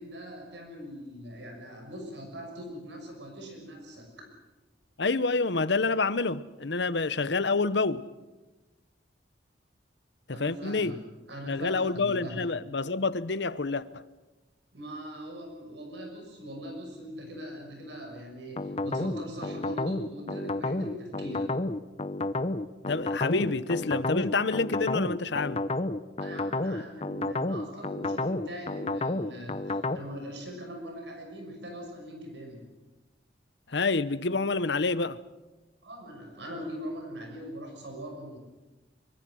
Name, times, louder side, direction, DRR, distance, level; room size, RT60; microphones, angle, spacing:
voice 1, 0.0-4.1 10.3-11.0 11.3-12.4 14.7-21.5 26.2-32.6 35.8-38.4, equal, 75° right, 6.1 m, -41 dB
voice 2, 5.0-8.0 10.3-11.0 11.5-14.0 22.9-25.6 33.7-35.2, left 3 dB, 70° left, 0.9 m, -28 dB
sound 1, 18.6-30.0, left 2 dB, 35° left, 0.7 m, -30 dB
24.0 x 24.0 x 6.4 m
head